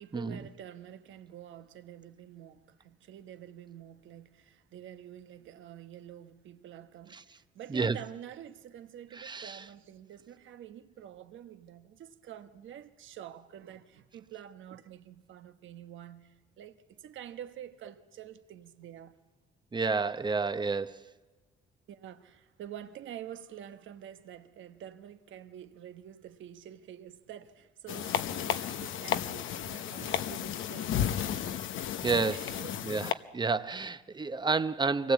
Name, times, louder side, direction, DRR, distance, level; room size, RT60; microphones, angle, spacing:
voice 1, 0.0-19.2 21.9-31.7 32.3-32.8, right 10 dB, 75° right, 1.2 m, -48 dB
voice 2, 7.7-8.0 9.1-9.6 19.7-21.1 32.0-32.5 32.8-35.1, right 4 dB, 20° right, 0.8 m, -30 dB
sound 1, 27.9-33.1, left 10 dB, 80° left, 0.9 m, -33 dB
24.0 x 18.0 x 8.4 m
cardioid pair, 90°, 20 cm